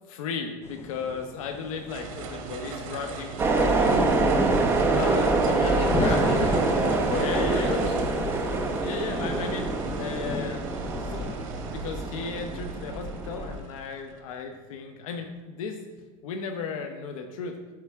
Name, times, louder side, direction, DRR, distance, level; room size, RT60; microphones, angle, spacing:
voice 1, 0.1-4.0 7.2-7.7 8.8-10.7 11.0-15.8 16.2-17.6, left 5 dB, 85° left, 5 dB, 0.8 m, -35 dB
sound 1, 0.6-11.3, left 3 dB, 15° left, 0.6 m, -35 dB
sound 2, 1.9-15.2, right 5 dB, 80° right, 1.1 m, -38 dB
sound 3, 3.4-13.6, right 3 dB, 15° right, 0.9 m, -26 dB
voice 2, 4.9-6.7 7.1-8.1, left 2 dB, 35° left, 1 dB, 1.6 m, -31 dB
12.0 x 4.5 x 3.6 m, 1.4 s
supercardioid pair, 140°, 17 cm